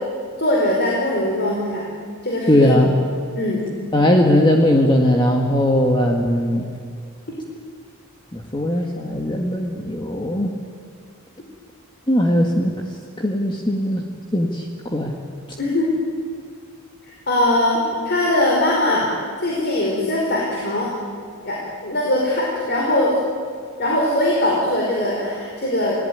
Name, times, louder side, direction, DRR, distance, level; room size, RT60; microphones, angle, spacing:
voice 1, 0.4-1.9 2.2-2.5 3.3-3.7 15.6-15.9 17.1-17.8 18.0-19.1 19.4-20.9 21.4-23.1 23.8-26.0, left 1 dB, 50° left, -3 dB, 5.0 m, -21 dB
voice 2, 2.5-2.9 3.9-6.7 8.3-10.5 12.1-12.7 13.2-14.1 14.3-15.2, left 1 dB, 20° left, 1 dB, 1.8 m, -19 dB
29.5 x 18.5 x 9.5 m, 2.2 s
head